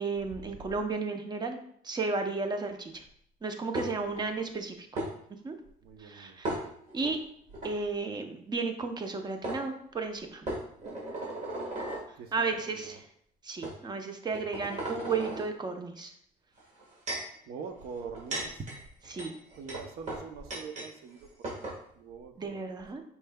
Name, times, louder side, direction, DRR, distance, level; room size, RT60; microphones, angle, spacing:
voice 1, 0.0-1.6 1.8-3.0 3.4-4.8 5.4-5.6 6.0-6.5 6.9-7.2 7.6-10.4 12.3-13.0 13.5-16.1 19.0-19.3 22.4-23.0, right 4 dB, 25° right, 5 dB, 0.6 m, -33 dB
sound 1, 3.8-4.2 5.0-5.1 6.4-7.1 7.5-7.7 9.0-9.1 9.4-9.6 10.5-12.1 12.8-13.0 13.6-13.8 14.3-15.5 16.6-17.4 18.0-20.9 21.2-21.3 21.4-21.8, right 1 dB, 45° right, 1.6 m, -36 dB
voice 2, 3.8-4.2 5.8-6.4 12.1-13.0 17.5-18.6 19.5-22.6, right 5 dB, 70° right, 6 dB, 0.7 m, -44 dB
5.3 x 4.5 x 2.2 m, 0.66 s
cardioid pair, 110°, 17 cm